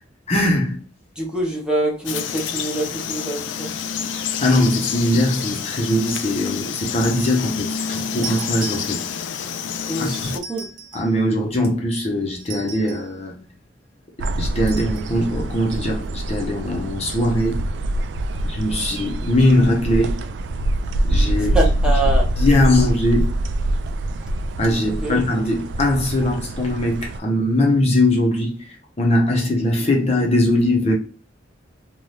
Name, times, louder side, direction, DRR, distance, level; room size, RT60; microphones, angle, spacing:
voice 1, 0.3-0.8 4.4-9.0 10.0-10.3 10.9-13.4 14.4-17.6 18.4-20.2 21.1-21.6 22.4-23.4 24.6-31.0, left 1 dB, 35° left, 0.6 m, -20 dB
voice 2, 1.2-3.7 9.9-10.7 21.3-22.3 25.0-25.2, right 1 dB, 5° right, 0.7 m, -25 dB
Frog, 2.0-10.4, left 7 dB, 75° left, 0.4 m, -28 dB
sound 1, 8.2-9.4 10.3-11.2 12.4-13.2 14.7-15.1, right 4 dB, 85° right, 1.2 m, -36 dB
sound 2, 14.2-27.2, right 1 dB, 65° right, 0.3 m, -24 dB
2.6 x 2.2 x 3.2 m
head